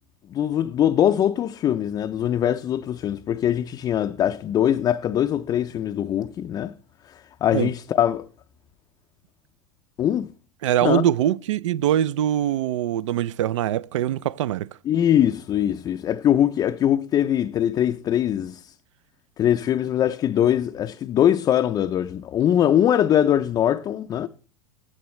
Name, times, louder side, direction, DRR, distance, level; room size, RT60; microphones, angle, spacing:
voice 1, 0.3-6.7 7.4-8.2 10.0-10.3 10.8-11.0 14.9-18.7 19.4-24.3, left 10 dB, 25° left, 0.4 m, -22 dB
voice 2, 10.6-14.7, right 11 dB, 85° right, 0.4 m, -23 dB
16.0 x 10.0 x 3.1 m
supercardioid pair, 135°, 15 cm